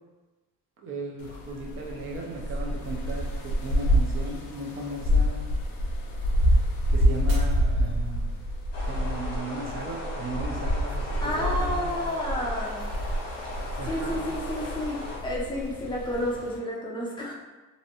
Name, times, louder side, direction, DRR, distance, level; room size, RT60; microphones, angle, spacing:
voice 1, 0.8-5.5 6.9-8.4 8.8-12.1 13.8-14.3, right 2 dB, 35° right, 0 dB, 0.5 m, -36 dB
sound 1, 1.2-16.6, equal, 75° left, 0.5 m, -28 dB
Shatter, 7.3-8.6 9.1-9.6 10.1-10.2, right 1 dB, 65° right, 0.9 m, -47 dB
sound 2, 8.7-15.2, left 2 dB, 45° left, 0.9 m, -38 dB
voice 2, 11.2-12.8 13.9-17.3, left 1 dB, 15° left, -4 dB, 0.5 m, -31 dB
2.6 x 2.1 x 2.7 m, 1.2 s
cardioid pair, 135°, 35 cm